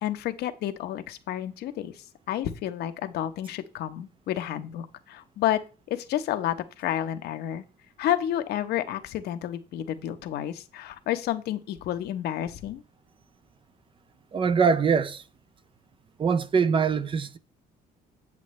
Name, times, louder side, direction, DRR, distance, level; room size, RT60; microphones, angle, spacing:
voice 1, 0.0-1.9 2.3-5.6 5.9-7.6 8.0-12.8, left 11 dB, 75° left, 0.9 m, -30 dB
voice 2, 14.3-15.2 16.2-17.4, right 6 dB, 30° right, 0.5 m, -23 dB
8.4 x 7.6 x 3.1 m
cardioid pair, 110°, 17 cm